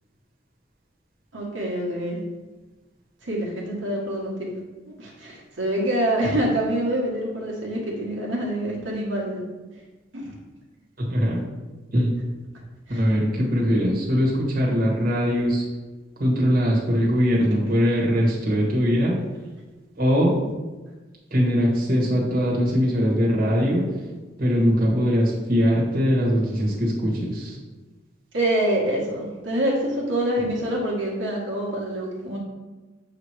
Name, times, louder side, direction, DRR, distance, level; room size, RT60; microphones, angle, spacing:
voice 1, 1.3-2.2 3.2-4.5 5.0-9.4 10.1-10.3 12.9-13.0 28.3-32.4, right 1 dB, 80° right, -4 dB, 1.4 m, -26 dB
voice 2, 11.1-11.4 11.9-12.1 12.9-15.6 16.2-19.2 20.0-20.3 21.3-23.9 24.4-27.6, equal, 50° right, -4 dB, 1.5 m, -21 dB
7.2 x 3.0 x 4.7 m, 1.2 s
head